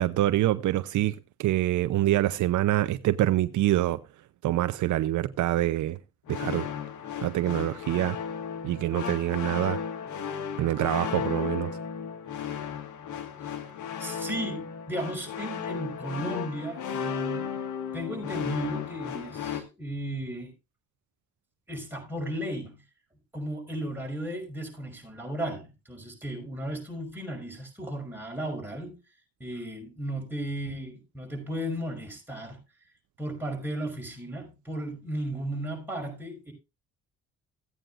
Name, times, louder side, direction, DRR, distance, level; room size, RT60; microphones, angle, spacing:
voice 1, 0.0-4.0 4.4-6.0 6.3-6.7 7.2-8.2 8.6-9.8 10.6-11.8, right 14 dB, 75° right, 0.7 m, -25 dB
sound 1, 6.3-19.6, left 7 dB, 75° left, 1.9 m, -35 dB
voice 2, 14.0-17.6 17.9-20.5 21.7-22.8 23.3-29.0 29.4-32.6 33.2-36.5, right 1 dB, 5° right, 5.7 m, -35 dB
16.0 x 9.0 x 2.5 m
cardioid pair, 90°, 30 cm